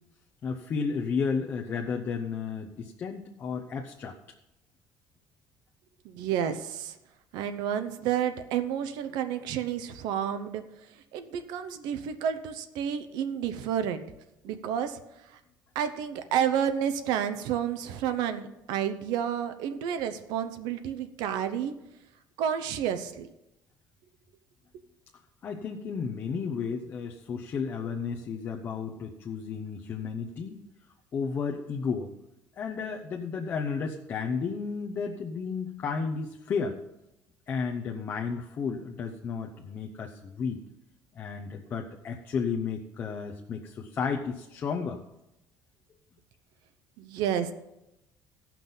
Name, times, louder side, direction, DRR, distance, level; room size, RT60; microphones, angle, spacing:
voice 1, 0.4-4.1 25.4-30.6 31.1-32.1 32.6-36.8 37.5-40.6 41.1-45.0, left 5 dB, 30° left, 1 dB, 0.7 m, -33 dB
voice 2, 6.0-7.0 7.3-14.1 14.4-15.4 15.7-21.7 22.4-23.3 47.0-47.5, right 9 dB, 80° right, 9 dB, 0.8 m, -30 dB
15.5 x 5.9 x 5.5 m, 0.89 s
cardioid pair, 180°, 7 cm